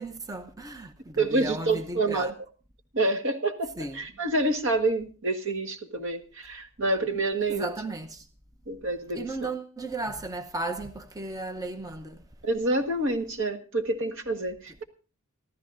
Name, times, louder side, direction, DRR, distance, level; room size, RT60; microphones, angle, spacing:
voice 1, 0.0-2.3 3.8-4.0 7.5-8.3 9.1-12.2, right 2 dB, 15° right, 0.7 m, -35 dB
voice 2, 1.2-2.3 2.9-7.7 8.7-9.5 12.4-14.8, right 2 dB, 60° right, 1.6 m, -28 dB
25.5 x 14.0 x 2.6 m
head